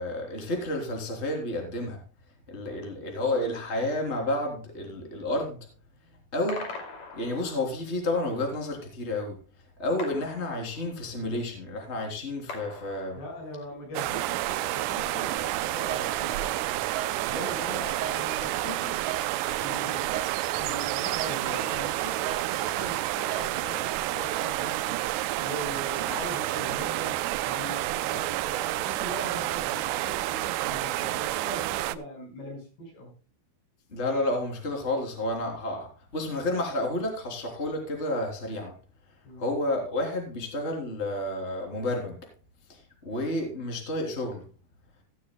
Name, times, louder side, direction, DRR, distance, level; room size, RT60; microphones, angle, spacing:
voice 1, 0.0-2.0 2.5-5.6 6.3-6.7 7.1-9.4 9.8-13.2 33.9-38.7 39.4-42.2 42.7-44.4, left 1 dB, 20° left, 3.0 m, -30 dB
sound 1, 6.5-7.9 10.0-11.2 12.5-13.6, left 3 dB, 45° left, 3.6 m, -41 dB
voice 2, 13.1-16.8 17.3-19.1 19.6-20.2 20.5-25.0 25.4-27.2 27.4-33.1 39.2-39.4, left 1 dB, 85° left, 7.7 m, -41 dB
sound 2, 13.9-32.0, right 16 dB, 90° right, 2.7 m, -29 dB
sound 3, 15.4-23.8, right 7 dB, 75° right, 3.9 m, -39 dB
16.0 x 12.0 x 2.2 m
omnidirectional pair, 4.6 m